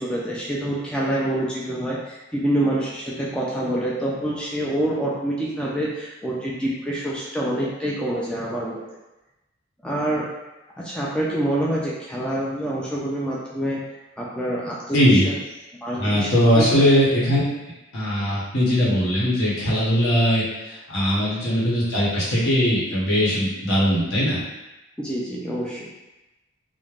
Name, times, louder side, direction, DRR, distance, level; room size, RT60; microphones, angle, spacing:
voice 1, 0.0-8.8 9.8-10.3 10.8-13.8 14.2-15.3 15.8-16.8 25.0-25.9, right 1 dB, 5° left, -6 dB, 0.3 m, -26 dB
voice 2, 14.9-15.3 16.0-17.4 17.9-24.4, equal, 75° left, -7 dB, 1.0 m, -20 dB
3.1 x 2.1 x 2.4 m, 1.0 s
head